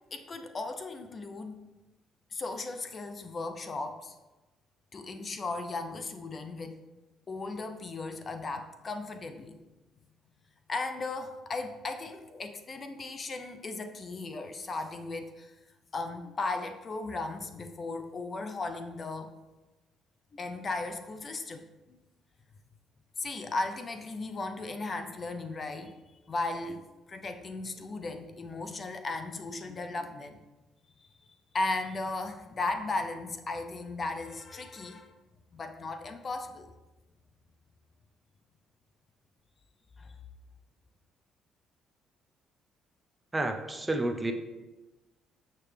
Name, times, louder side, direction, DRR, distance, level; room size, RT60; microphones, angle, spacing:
voice 1, 0.1-1.6 2.3-4.1 4.9-6.8 7.3-9.6 10.7-15.5 15.9-19.3 20.3-22.0 23.2-26.0 26.3-30.4 31.0-31.1 31.5-35.1 35.5-36.7 40.0-40.2, left 3 dB, 35° left, 7 dB, 0.6 m, -36 dB
voice 2, 43.3-44.3, right 2 dB, 15° right, 6 dB, 0.7 m, -30 dB
7.0 x 6.7 x 3.3 m, 1.1 s
cardioid pair, 105°, 0 cm